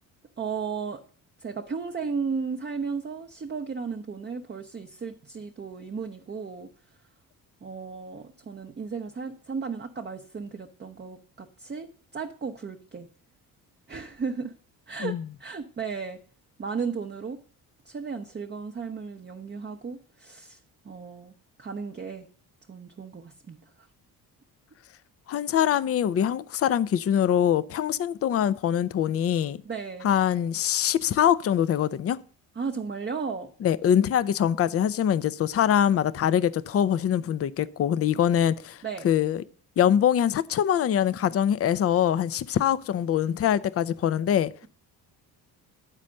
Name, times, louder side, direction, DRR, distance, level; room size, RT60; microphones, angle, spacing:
voice 1, 0.4-1.0 1.4-6.7 7.6-13.1 13.9-14.5 14.9-16.2 16.6-17.4 17.9-20.6 20.8-22.3 22.7-23.6 29.6-30.1 32.6-33.5 38.8-39.1, right 5 dB, 25° right, 0.7 m, -35 dB
voice 2, 25.3-29.6 30.0-32.2 33.6-39.4 39.8-44.7, left 9 dB, 30° left, 0.5 m, -24 dB
9.0 x 4.2 x 6.2 m
hypercardioid pair, 55°, 47 cm